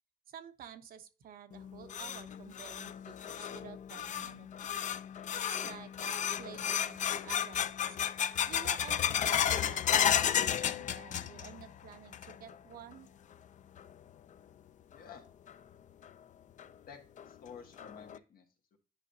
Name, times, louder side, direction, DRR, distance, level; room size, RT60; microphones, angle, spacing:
voice 1, 0.3-4.8 5.3-8.0 8.5-13.1, right 8 dB, 85° right, 8 dB, 0.8 m, -51 dB
sound 1, 1.5-11.7 11.9-12.5 12.9-13.0 13.8-13.9 15.5-15.6 16.0-16.1 16.6-16.7 17.2-17.3 17.8-18.2, left 9 dB, 55° left, 0.4 m, -33 dB
voice 2, 14.9-15.3 16.9-18.8, left 6 dB, 85° left, 3 dB, 1.6 m, -52 dB
9.7 x 5.0 x 2.7 m, 0.37 s
cardioid pair, 110°, 15 cm